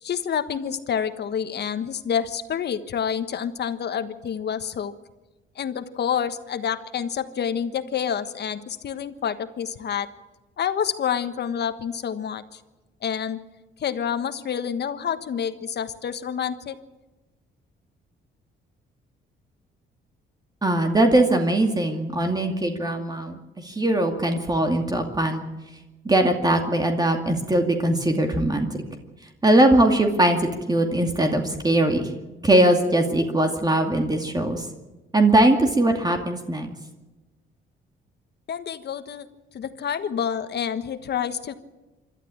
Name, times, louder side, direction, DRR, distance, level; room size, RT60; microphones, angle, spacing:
voice 1, 0.0-4.9 5.6-10.1 10.6-12.6 13.0-13.4 13.8-16.8 38.5-39.3 39.5-41.5, left 8 dB, 55° left, 11 dB, 1.4 m, -28 dB
voice 2, 20.6-25.4 26.0-28.8 29.4-32.1 32.4-34.7 35.1-36.7, right 1 dB, 20° right, 4 dB, 2.4 m, -21 dB
26.5 x 12.5 x 8.9 m, 1.1 s
cardioid pair, 90°, 20 cm